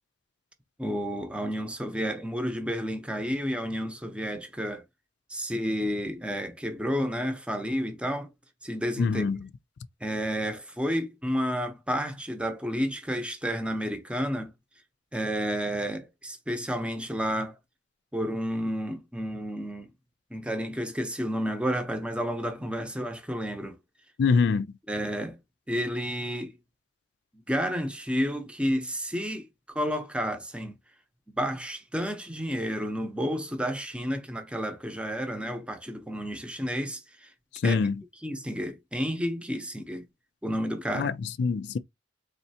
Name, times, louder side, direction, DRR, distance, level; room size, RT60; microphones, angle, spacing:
voice 1, 0.8-4.8 5.3-8.3 8.6-9.3 10.0-14.5 15.1-17.6 18.1-19.9 20.3-23.8 24.9-25.4 25.7-26.6 27.5-30.8 31.3-37.3 37.6-37.8 38.2-40.0 40.4-41.1, equal, 5° right, 0.7 m, -31 dB
voice 2, 9.0-9.5 24.2-24.8 37.6-38.0 40.9-41.8, left 5 dB, 65° left, 0.4 m, -25 dB
4.2 x 3.2 x 2.8 m
head